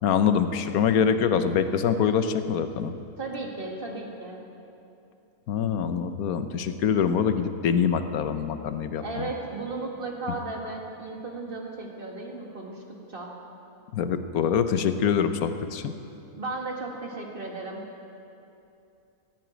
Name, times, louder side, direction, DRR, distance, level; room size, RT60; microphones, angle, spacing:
voice 1, 0.0-2.9 5.5-9.3 13.9-15.9, left 7 dB, 75° left, 10 dB, 1.3 m, -24 dB
voice 2, 3.2-4.5 9.0-13.3 16.4-17.9, right 3 dB, 35° right, 0 dB, 2.0 m, -35 dB
16.0 x 9.2 x 9.0 m, 2.8 s
omnidirectional pair, 1.6 m